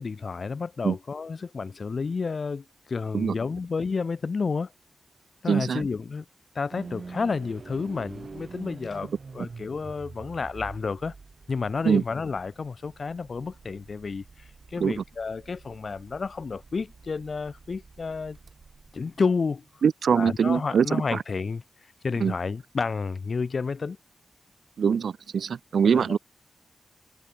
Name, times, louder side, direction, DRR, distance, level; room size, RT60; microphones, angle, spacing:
voice 1, 0.0-4.7 5.4-6.2 6.5-11.1 11.5-18.4 18.9-19.6 20.2-21.6 22.0-24.0 25.8-26.2, left 4 dB, 45° left, 0.9 m, -30 dB
voice 2, 5.5-5.8 11.8-12.0 14.8-15.0 19.8-21.2 22.2-22.3 24.8-26.2, right 6 dB, 75° right, 1.3 m, -23 dB
sound 1, 6.7-19.8, right 4 dB, 40° right, 4.1 m, -46 dB
wide cardioid pair, 170°, 0 cm